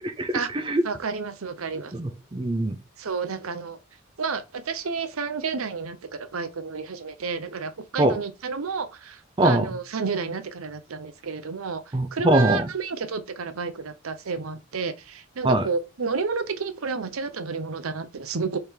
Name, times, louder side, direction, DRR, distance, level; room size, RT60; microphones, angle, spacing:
voice 1, 0.0-0.4 0.7-0.8 2.0-2.8 8.0-8.2 9.4-9.7 11.9-12.7 15.4-15.7, right 1 dB, 25° right, 0.5 m, -22 dB
voice 2, 0.8-1.9 3.0-3.8 4.2-18.6, right 5 dB, 75° right, 0.7 m, -31 dB
3.6 x 3.3 x 4.4 m
head